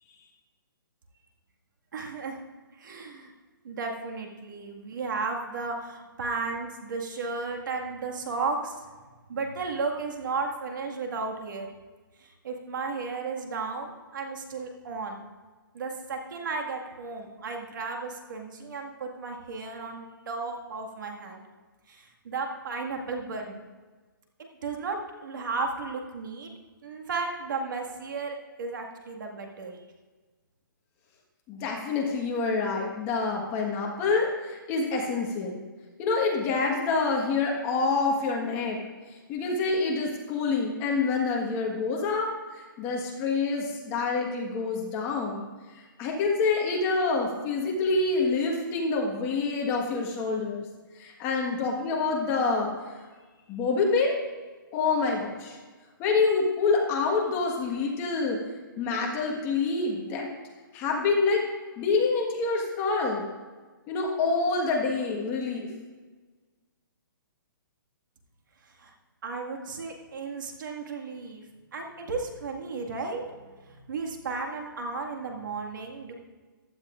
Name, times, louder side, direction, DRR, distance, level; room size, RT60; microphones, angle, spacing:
voice 1, 1.9-2.4 2.8-3.3 3.6-8.8 9.3-11.7 12.2-15.2 15.7-21.4 21.9-23.6 24.4-25.0 25.2-26.5 26.8-29.8 68.8-68.9 69.2-71.5 71.7-73.2 73.7-76.1, right 4 dB, 60° right, 2 dB, 1.9 m, -34 dB
voice 2, 31.5-35.6 36.0-38.8 39.1-50.7 50.9-52.9 53.5-54.2 54.7-55.6 56.0-58.4 58.8-60.3 60.7-61.4 61.8-63.2 63.9-65.7, left 4 dB, 20° left, 0 dB, 1.4 m, -27 dB
15.0 x 11.0 x 2.5 m, 1.3 s
hypercardioid pair, 165°, 12 cm